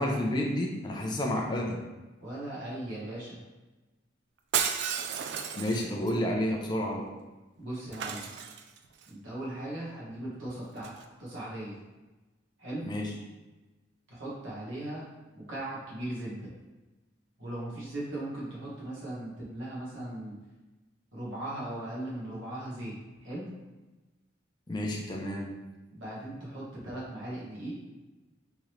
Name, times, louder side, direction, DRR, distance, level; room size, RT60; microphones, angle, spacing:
voice 1, 0.0-1.8 5.6-7.1 12.8-13.1 24.7-25.5, left 1 dB, 25° left, 0 dB, 0.4 m, -30 dB
voice 2, 2.2-3.4 7.6-8.3 9.1-10.9 11.2-11.8 12.6-12.9 14.1-16.5 17.4-20.3 21.1-22.9 23.2-23.5 25.9-27.8, right 1 dB, 80° right, -7 dB, 1.3 m, -38 dB
Shatter, 4.5-6.1 7.9-9.0 10.8-11.0, right 7 dB, 60° right, 0.3 m, -33 dB
3.7 x 3.1 x 3.0 m, 1.1 s
head